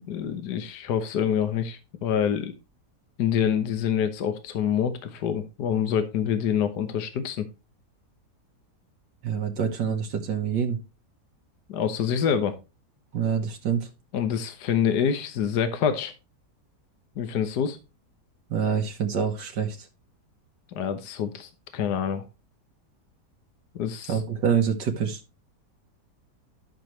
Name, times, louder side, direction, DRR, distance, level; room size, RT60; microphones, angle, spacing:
voice 1, 0.1-2.5 3.2-7.5 11.7-12.6 14.1-16.1 17.2-17.8 20.7-22.2 23.7-24.2, left 8 dB, 70° left, 9 dB, 1.6 m, -26 dB
voice 2, 9.2-10.8 13.1-13.9 18.5-19.9 24.1-25.2, right 7 dB, 85° right, 2 dB, 2.0 m, -26 dB
12.0 x 6.7 x 3.1 m, 0.28 s
omnidirectional pair, 1.8 m